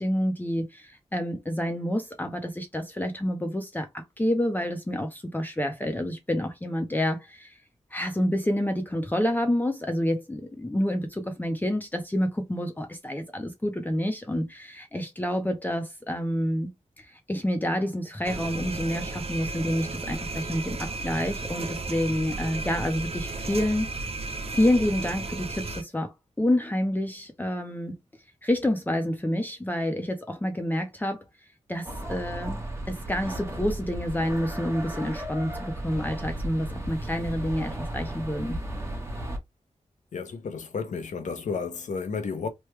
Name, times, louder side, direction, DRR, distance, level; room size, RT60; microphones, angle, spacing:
voice 1, 0.0-7.6 7.9-16.7 17.0-23.9 24.5-28.0 28.4-31.2 31.7-32.6 32.9-38.6, left 1 dB, 15° left, 0.6 m, -28 dB
sound 1, 18.2-25.8, right 3 dB, 55° right, 0.6 m, -34 dB
sound 2, 31.8-39.4, right 1 dB, 20° right, 1.0 m, -35 dB
voice 2, 40.1-42.5, left 5 dB, 85° left, 0.7 m, -32 dB
3.1 x 2.2 x 3.2 m
wide cardioid pair, 75°, 12 cm